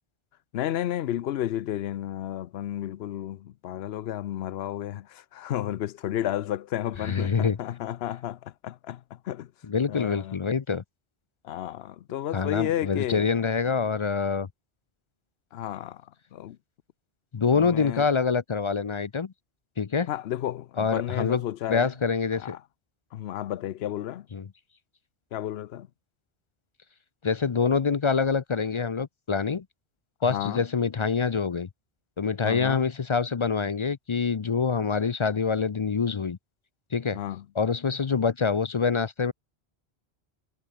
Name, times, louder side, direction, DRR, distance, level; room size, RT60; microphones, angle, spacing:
voice 1, 0.5-9.5 9.9-10.4 11.4-13.3 15.5-16.0 16.3-16.6 17.5-18.1 20.1-21.9 22.3-22.6 23.1-24.3 25.3-25.9 30.2-30.6 32.4-32.8 37.1-37.5, left 12 dB, 75° left, 0.8 m, -32 dB
voice 2, 7.0-7.6 9.7-10.8 12.3-14.5 17.3-19.3 19.8-20.1 20.8-21.4 21.7-22.6 24.3-24.4 27.2-29.6 30.2-31.7 32.2-36.4 36.9-37.2 37.6-39.3, left 5 dB, 40° left, 0.5 m, -25 dB
omnidirectional pair, 1.1 m